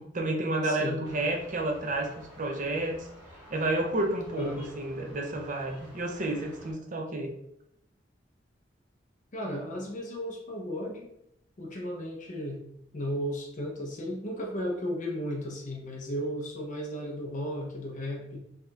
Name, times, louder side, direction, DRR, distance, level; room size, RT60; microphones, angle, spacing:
voice 1, 0.0-2.1 2.4-3.1 3.5-7.3, right 2 dB, 45° right, 2 dB, 0.6 m, -30 dB
voice 2, 0.6-1.0 4.3-4.7 9.3-11.1 11.6-12.6 12.9-18.4, equal, 45° left, 0 dB, 0.7 m, -35 dB
sound 1, 1.0-6.7, equal, 10° right, 1.4 m, -51 dB
4.8 x 2.8 x 2.3 m, 0.78 s
head